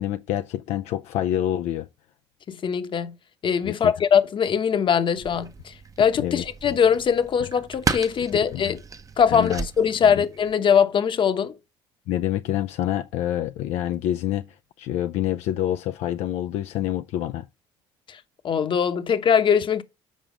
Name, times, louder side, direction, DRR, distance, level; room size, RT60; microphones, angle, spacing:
voice 1, 0.0-1.9 3.6-3.9 6.2-6.4 8.5-8.7 9.3-9.7 10.2-10.3 12.1-14.4 14.8-17.5, left 12 dB, 70° left, 0.4 m, -27 dB
voice 2, 2.5-3.1 3.4-8.8 9.2-11.6 18.1-18.2 18.4-19.8, left 7 dB, 45° left, 0.9 m, -21 dB
sound 1, 5.2-10.5, right 5 dB, 30° right, 0.8 m, -34 dB
7.4 x 4.7 x 5.0 m
supercardioid pair, 75°, 12 cm